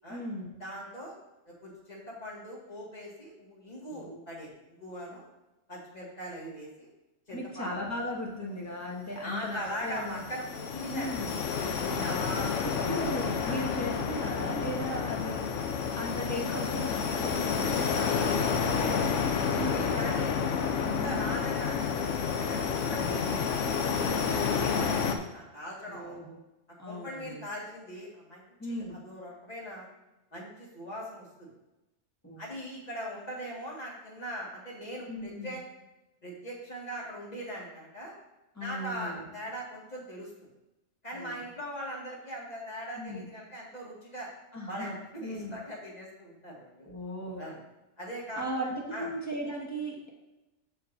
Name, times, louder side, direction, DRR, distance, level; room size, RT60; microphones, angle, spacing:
voice 1, 0.1-0.5 3.9-4.2 7.3-10.2 10.9-11.3 11.8-12.2 12.6-15.5 16.0-18.9 19.5-19.9 20.8-21.2 23.0-23.5 25.9-26.4 26.8-27.4 28.6-29.0 32.2-32.4 35.1-35.6 38.5-39.3 41.1-41.4 43.0-43.3 44.5-45.6 46.8-47.4 48.4-50.1, equal, 15° left, -3 dB, 1.6 m, -37 dB
voice 2, 0.6-1.1 1.5-5.2 5.7-6.9 7.3-7.7 9.2-11.1 11.6-12.9 13.4-13.6 16.5-16.6 18.1-19.0 19.2-20.4 20.7-23.9 24.3-26.2 26.8-29.9 30.3-31.5 32.4-35.6 36.2-38.1 38.6-40.3 41.0-44.3 44.7-46.9 47.4-47.6 48.0-48.4 48.9-49.1, equal, 35° left, -4 dB, 2.1 m, -41 dB
sound 1, 9.5-25.2, left 6 dB, 85° left, 1.1 m, -30 dB
13.5 x 4.8 x 2.7 m, 1.0 s
omnidirectional pair, 1.2 m